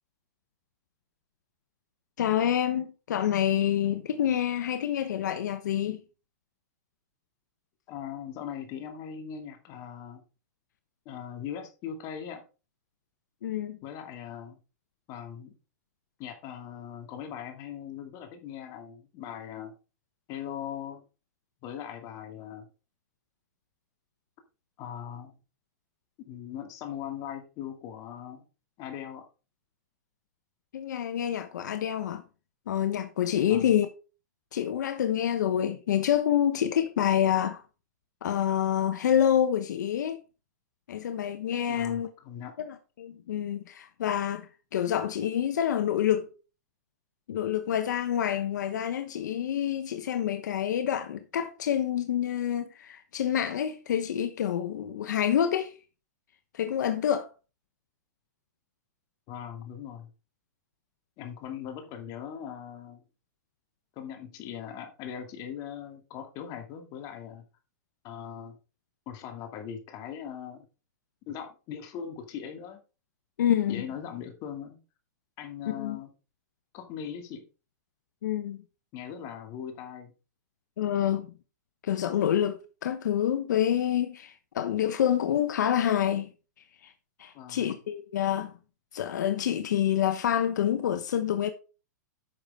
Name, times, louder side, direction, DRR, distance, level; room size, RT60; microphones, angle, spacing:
voice 1, 2.2-6.0 13.4-13.8 30.7-32.2 32.7-33.9 34.5-37.6 38.2-40.2 40.9-42.1 42.6-46.3 47.3-55.7 56.5-57.3 73.4-73.8 75.7-76.0 78.2-78.6 80.8-81.3 81.8-86.3 86.8-86.9 87.2-88.5 88.9-91.5, left 10 dB, 80° left, 1.0 m, -27 dB
voice 2, 7.9-10.2 11.1-12.4 13.8-14.6 15.1-15.5 16.2-19.7 20.3-21.0 21.6-22.7 24.8-25.3 26.2-28.4 28.8-29.2 33.5-33.7 41.7-42.5 59.3-60.1 61.2-63.0 64.0-67.4 68.0-68.6 69.1-70.7 71.3-72.8 73.7-74.8 75.4-76.1 76.7-77.5 78.9-80.1 87.3-87.8, left 8 dB, 40° left, 2.4 m, -40 dB
9.8 x 6.7 x 3.7 m
hypercardioid pair, 140°, 9 cm